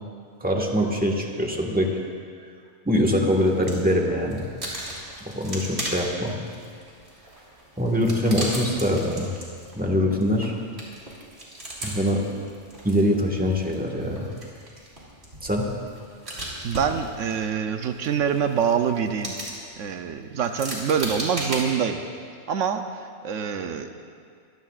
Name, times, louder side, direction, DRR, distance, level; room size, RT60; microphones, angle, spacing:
voice 1, 0.4-1.9 2.8-4.4 5.3-6.4 7.8-9.3 9.7-10.5 11.8-12.2 12.8-14.3 15.4-15.7, equal, 5° right, -1 dB, 1.5 m, -23 dB
sound 1, 3.2-3.9 4.2-21.6, right 1 dB, 60° right, 3.4 m, -38 dB
voice 2, 16.6-19.3 19.8-22.0 22.5-23.0 23.2-24.0, right 7 dB, 85° right, 7 dB, 1.1 m, -25 dB
23.5 x 16.0 x 2.4 m, 2.2 s
omnidirectional pair, 1.3 m